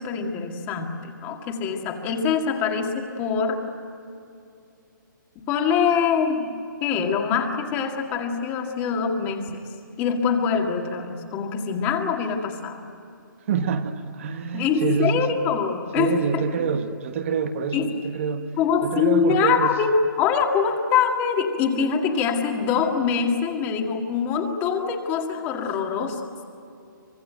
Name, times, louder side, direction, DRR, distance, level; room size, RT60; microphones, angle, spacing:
voice 1, 0.0-3.6 5.5-6.5 6.8-9.4 10.0-12.8 14.5-16.4 17.7-17.9 18.6-26.2, left 6 dB, 20° left, 3 dB, 2.0 m, -24 dB
voice 2, 13.4-15.4 16.0-18.5 18.8-19.8, right 6 dB, 40° right, 7 dB, 1.3 m, -26 dB
25.0 x 21.5 x 9.0 m, 2.6 s
hypercardioid pair, 165°, 11 cm